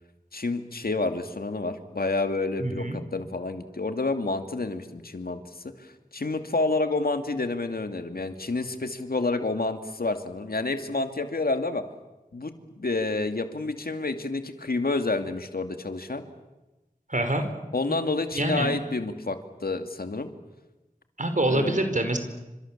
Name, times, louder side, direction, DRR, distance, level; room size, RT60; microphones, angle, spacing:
voice 1, 0.3-5.6 6.1-11.8 12.3-16.2 17.7-20.3 21.5-21.8, left 3 dB, 85° left, 7 dB, 2.4 m, -29 dB
voice 2, 2.6-3.0 17.1-17.4 17.9-18.0 18.3-18.7 21.2-22.2, right 1 dB, 55° right, 7 dB, 4.7 m, -25 dB
30.0 x 26.5 x 7.4 m, 1.1 s
wide cardioid pair, 45°, 15 cm